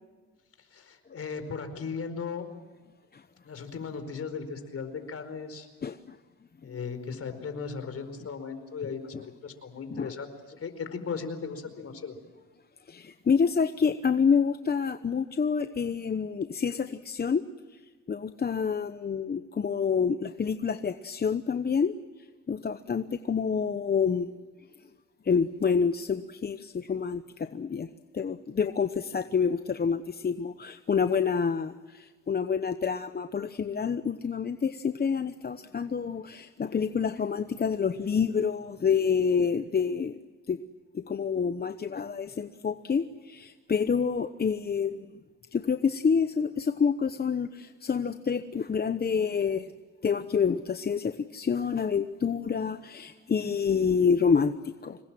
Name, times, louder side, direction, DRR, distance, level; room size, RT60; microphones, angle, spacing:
voice 1, 0.7-2.5 3.4-5.7 6.6-10.3 10.6-12.2, left 5 dB, 50° left, 9 dB, 4.8 m, -37 dB
voice 2, 5.8-6.2 9.1-9.3 9.9-10.1 12.9-17.5 17.7-17.8 18.1-21.9 22.5-24.3 25.2-27.9 28.1-40.2 40.5-40.6 40.9-45.2 45.5-49.7 50.0-55.0, left 6 dB, 30° left, 10 dB, 1.0 m, -28 dB
26.5 x 22.0 x 7.7 m, 1.4 s
cardioid pair, 90°, 30 cm